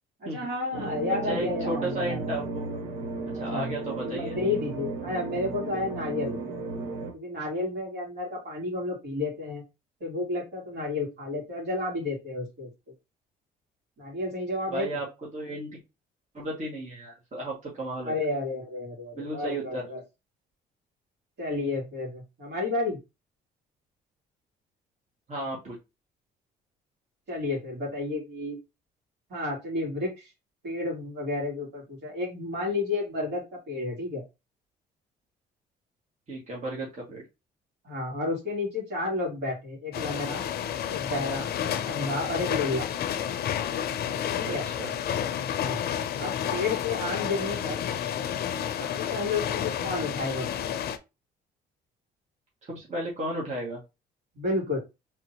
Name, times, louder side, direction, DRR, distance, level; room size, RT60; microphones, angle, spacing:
voice 1, 0.2-2.3 3.3-6.4 7.1-9.6 10.0-12.7 14.0-14.9 18.0-20.0 21.4-23.0 27.3-28.6 29.3-30.3 30.6-34.2 37.8-40.4 40.9-42.8 44.4-44.6 45.6-45.8 46.2-47.8 48.8-50.7 54.3-54.8, left 2 dB, 65° right, -3 dB, 2.8 m, -31 dB
sound 1, 0.7-7.1, right 3 dB, 85° right, 1.1 m, -34 dB
voice 2, 1.3-2.7 3.4-4.4 14.7-15.8 16.3-18.2 19.1-19.9 25.3-25.8 36.3-37.2 44.4-44.9 52.6-53.8, right 1 dB, 40° right, -4 dB, 2.0 m, -34 dB
sound 2, 39.9-51.0, left 9 dB, 60° left, 0.5 m, -30 dB
3.8 x 3.7 x 2.9 m, 0.26 s
supercardioid pair, 75°, 18 cm